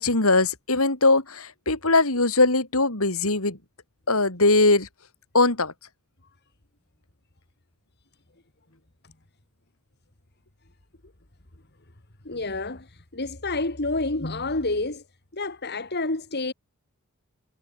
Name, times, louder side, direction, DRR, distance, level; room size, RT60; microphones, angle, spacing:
voice 1, 0.0-3.6 4.1-4.9 5.3-5.7, left 3 dB, 75° left, 4.5 m, -21 dB
voice 2, 12.2-15.0 15.3-16.5, left 2 dB, 50° left, 2.5 m, -29 dB
head